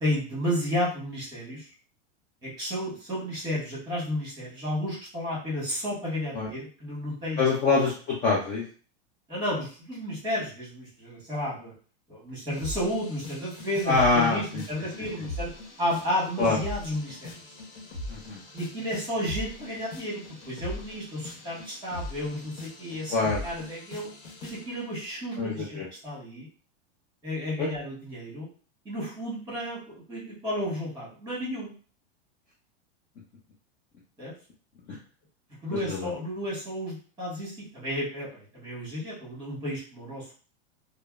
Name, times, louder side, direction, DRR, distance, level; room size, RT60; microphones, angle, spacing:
voice 1, 0.0-1.6 2.4-7.5 9.3-11.7 12.1-15.5 15.8-17.3 18.5-23.1 23.4-24.1 24.4-26.5 27.2-28.5 28.8-31.7 34.2-34.3 35.6-40.3, equal, 10° right, -5 dB, 1.4 m, -32 dB
voice 2, 7.4-8.6 13.9-14.6 16.4-16.6 18.1-18.4 23.1-23.4 25.4-25.9 27.6-27.7 35.9-36.1, left 4 dB, 20° left, -4 dB, 0.4 m, -25 dB
sound 1, 12.5-24.8, left 1 dB, 65° left, 1.0 m, -41 dB
3.1 x 2.0 x 2.3 m, 0.40 s
supercardioid pair, 150°, 35 cm